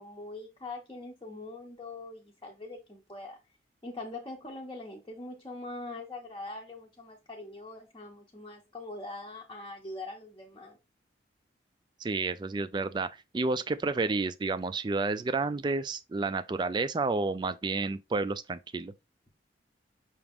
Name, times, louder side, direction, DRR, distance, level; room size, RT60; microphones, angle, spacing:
voice 1, 0.0-3.4 3.8-10.8, left 2 dB, 25° left, 0.7 m, -42 dB
voice 2, 12.0-18.9, right 3 dB, 25° right, 0.3 m, -30 dB
5.9 x 2.5 x 3.5 m
head